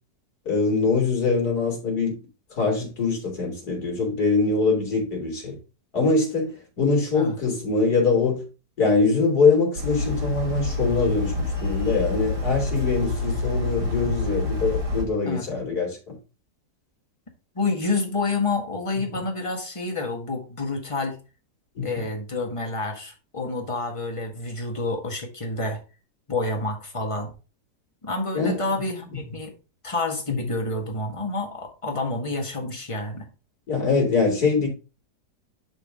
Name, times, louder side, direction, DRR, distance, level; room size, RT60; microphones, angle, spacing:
voice 1, 0.4-2.1 2.5-5.6 5.9-8.4 8.8-16.2 21.8-22.0 28.3-28.6 29.1-29.2 30.3-30.5 33.7-34.7, left 4 dB, 65° left, 3.4 m, -23 dB
sound 1, 9.8-15.0, left 2 dB, 75° right, 2.7 m, -27 dB
voice 2, 17.5-21.2 21.8-25.8 26.3-27.3 28.0-29.5 29.8-33.3, left 3 dB, 20° left, 1.6 m, -28 dB
10.5 x 3.9 x 3.6 m
omnidirectional pair, 1.8 m